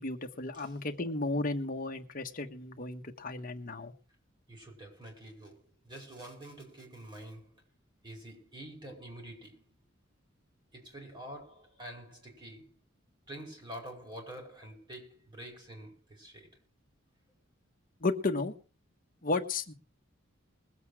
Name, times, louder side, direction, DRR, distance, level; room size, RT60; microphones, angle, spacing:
voice 1, 0.0-3.9 18.0-18.5 19.2-19.7, left 3 dB, 45° left, 1.4 m, -33 dB
voice 2, 4.5-7.6 8.0-9.8 10.7-12.7 13.3-16.5, right 1 dB, 25° right, 5.0 m, -47 dB
21.0 x 8.2 x 4.8 m
head